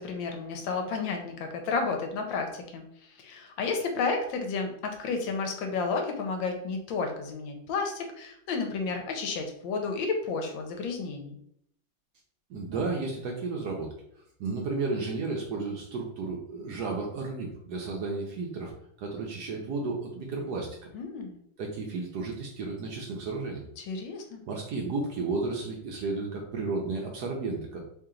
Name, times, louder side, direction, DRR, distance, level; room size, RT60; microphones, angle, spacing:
voice 1, 0.0-11.4 20.9-21.4 23.8-24.4, left 4 dB, 75° left, 4 dB, 1.3 m, -32 dB
voice 2, 12.5-13.9 14.4-18.7 19.0-20.9 21.6-23.6 24.4-27.8, right 3 dB, 70° right, 0 dB, 1.0 m, -33 dB
3.2 x 2.8 x 3.7 m, 0.72 s
omnidirectional pair, 2.2 m